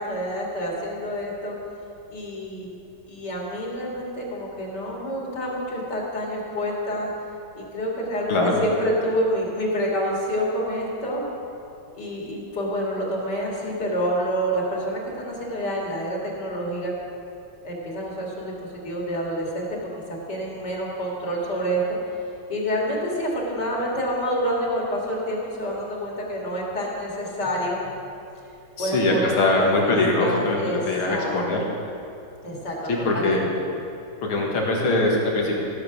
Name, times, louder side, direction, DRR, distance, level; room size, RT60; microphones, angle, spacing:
voice 1, 0.0-1.6 2.1-2.8 3.1-7.1 7.5-11.2 11.9-16.9 17.6-18.5 18.8-19.7 20.1-21.8 22.5-27.8 28.8-30.8 31.1-31.3 32.4-33.4, equal, 55° left, -3 dB, 2.8 m, -28 dB
voice 2, 8.3-8.6 28.8-31.6 32.9-33.5 34.2-35.5, left 2 dB, 85° left, -1 dB, 2.7 m, -22 dB
16.0 x 7.6 x 6.0 m, 2.6 s
omnidirectional pair, 2.2 m